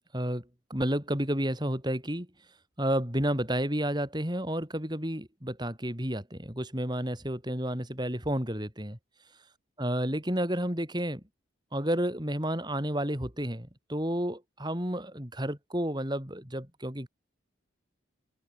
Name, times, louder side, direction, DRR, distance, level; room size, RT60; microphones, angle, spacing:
voice 1, 0.7-2.3 2.8-9.0 9.8-11.2 11.7-17.1, equal, 20° right, 4.9 m, -31 dB
head